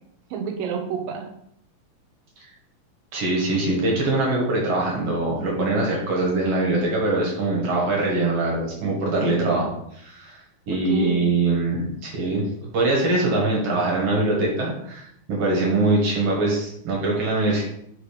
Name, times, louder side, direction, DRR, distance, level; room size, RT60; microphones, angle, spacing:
voice 1, 0.3-1.3 9.2-9.6 10.7-11.3, right 6 dB, 75° right, 5 dB, 2.4 m, -30 dB
voice 2, 3.1-9.7 10.1-10.3 10.7-12.4 12.7-17.7, right 2 dB, 50° right, -2 dB, 2.1 m, -23 dB
5.3 x 5.0 x 5.1 m, 0.73 s
omnidirectional pair, 4.2 m